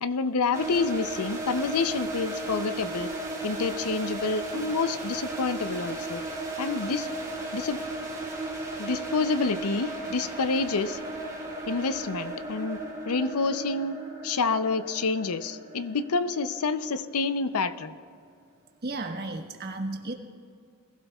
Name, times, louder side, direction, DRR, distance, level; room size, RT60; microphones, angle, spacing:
voice 1, 0.0-3.1 3.4-6.2 6.6-7.1 7.5-7.8 8.8-11.0 11.7-14.0 14.2-17.9, left 4 dB, 90° left, 12 dB, 0.6 m, -28 dB
sound 1, 0.5-17.4, right 2 dB, 15° right, 3.1 m, -35 dB
voice 2, 18.8-20.1, right 2 dB, 45° right, 3 dB, 1.3 m, -33 dB
21.0 x 16.0 x 2.4 m, 2.3 s
head